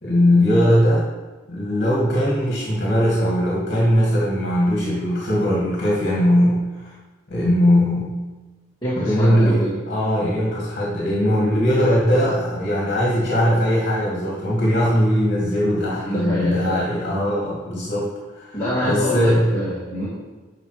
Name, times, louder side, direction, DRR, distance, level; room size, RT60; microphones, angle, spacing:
voice 1, 0.0-1.1 1.5-6.9 7.3-8.1 9.0-18.1 18.4-19.5, equal, 45° left, -5 dB, 2.3 m, -20 dB
voice 2, 8.8-9.7 16.0-16.8 18.5-20.1, equal, 20° left, -9 dB, 2.3 m, -25 dB
11.0 x 5.4 x 5.0 m, 1.2 s
head